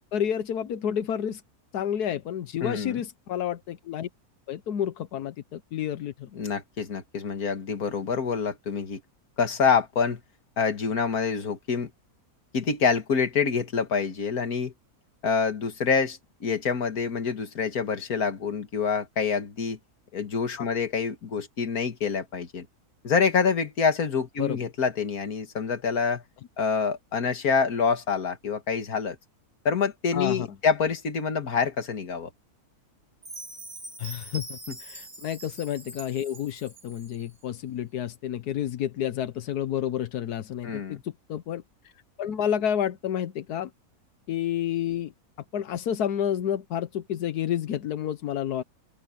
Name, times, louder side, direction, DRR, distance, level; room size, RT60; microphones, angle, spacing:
voice 1, 0.1-1.4 1.7-4.1 4.5-6.3 20.6-20.7 24.4-24.6 30.1-30.5 34.0-41.9 42.2-43.7 44.3-45.1 45.5-48.6, left 10 dB, 90° left, 1.4 m, -30 dB
voice 2, 2.6-3.0 6.3-9.0 9.4-10.2 10.6-11.9 12.5-14.7 15.2-19.8 20.1-22.7 23.0-26.2 26.6-29.2 29.7-32.3 34.7-34.8 40.6-41.0, left 5 dB, 70° left, 2.2 m, -26 dB
Chime, 33.2-37.3, right 2 dB, 40° right, 5.4 m, -43 dB
open air
omnidirectional pair, 1.6 m